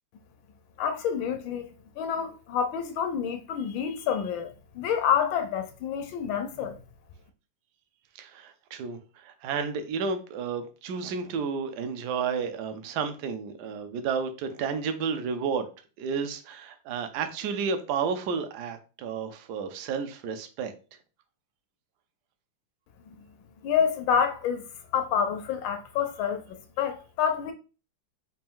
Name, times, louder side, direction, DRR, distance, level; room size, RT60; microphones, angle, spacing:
voice 1, 0.8-1.7 2.0-6.8 23.1-23.2 23.6-24.7 24.9-27.5, left 8 dB, 75° left, 1.2 m, -28 dB
voice 2, 8.2-15.7 16.0-20.7, right 6 dB, 75° right, 0.9 m, -31 dB
4.3 x 2.6 x 3.6 m
omnidirectional pair, 2.3 m